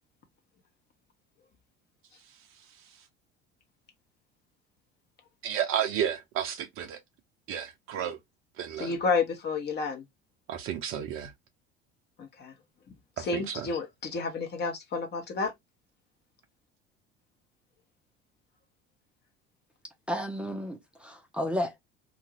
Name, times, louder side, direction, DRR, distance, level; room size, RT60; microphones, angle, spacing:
voice 1, 5.4-7.0 7.5-8.2 8.6-8.9 10.5-11.3 13.2-13.7, right 9 dB, 40° right, 0.6 m, -32 dB
voice 2, 8.8-10.0 12.2-12.5 13.2-15.5, left 4 dB, 30° left, 0.9 m, -30 dB
voice 3, 20.1-21.8, equal, 5° right, 0.6 m, -32 dB
2.6 x 2.4 x 3.0 m
figure-of-eight pair, 60°, 33 cm